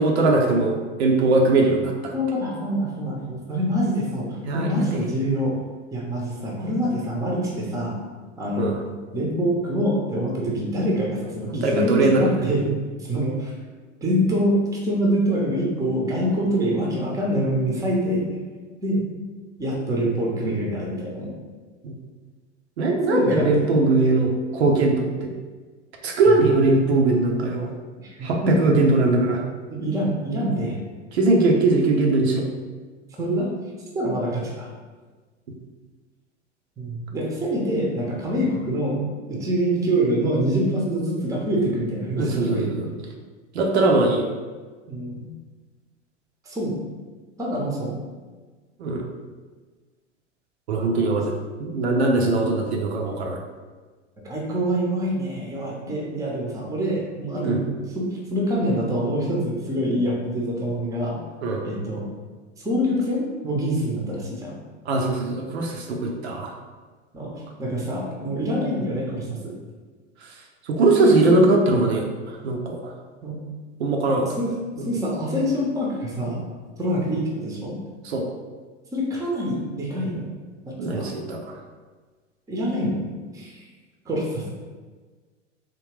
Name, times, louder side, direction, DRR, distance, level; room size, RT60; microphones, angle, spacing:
voice 1, 0.0-2.1 4.4-5.0 8.5-8.8 11.5-12.2 21.8-22.0 22.8-25.3 26.0-27.7 28.2-29.4 31.1-32.5 42.2-42.9 43.5-44.3 48.8-49.1 50.7-51.3 51.6-53.4 57.4-57.6 61.4-61.6 64.9-66.5 70.7-72.9 73.8-74.3 74.8-74.9 78.0-78.3 80.8-81.6, right 2 dB, 60° right, 0 dB, 0.6 m, -21 dB
voice 2, 2.1-5.6 5.9-7.9 8.4-8.7 9.1-12.7 13.0-13.5 14.0-18.2 18.8-19.0 19.6-21.3 23.1-23.8 26.3-26.4 28.0-28.8 29.7-30.8 33.2-33.5 33.9-34.7 36.8-39.0 39.3-42.9 44.9-45.3 46.5-46.7 47.4-47.9 50.8-50.9 54.2-57.6 57.9-61.2 61.6-62.0 62.6-64.5 67.1-69.5 70.9-71.4 73.2-73.4 74.2-74.5 74.8-76.4 76.8-77.8 78.9-80.3 80.9-81.1 82.5-83.1 83.3-83.6 84.1-84.5, equal, 10° right, -2 dB, 0.7 m, -25 dB
3.6 x 2.8 x 3.0 m, 1.4 s
figure-of-eight pair, 85°, 36 cm